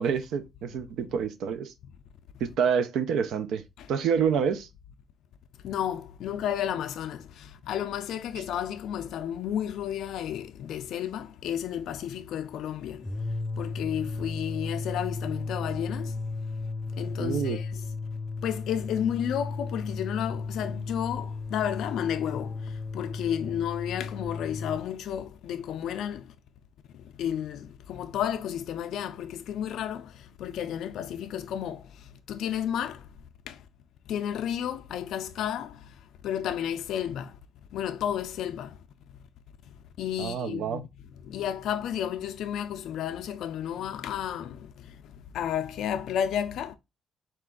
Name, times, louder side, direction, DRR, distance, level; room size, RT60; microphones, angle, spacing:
voice 1, 0.0-1.7 2.4-3.6 3.9-4.7 17.2-17.6 40.2-40.8, right 7 dB, 80° right, 0.5 m, -27 dB
voice 2, 5.6-13.0 13.6-16.1 17.0-17.8 18.4-22.6 22.9-26.2 27.2-30.1 30.4-31.8 32.3-33.0 33.5-33.6 34.1-35.7 36.2-37.3 37.7-38.8 40.0-40.9 41.3-44.6 45.3-46.7, left 9 dB, 80° left, 0.3 m, -32 dB
sound 1, 12.9-24.9, left 3 dB, 30° left, 0.6 m, -35 dB
4.1 x 2.4 x 3.6 m
cardioid pair, 90°, 0 cm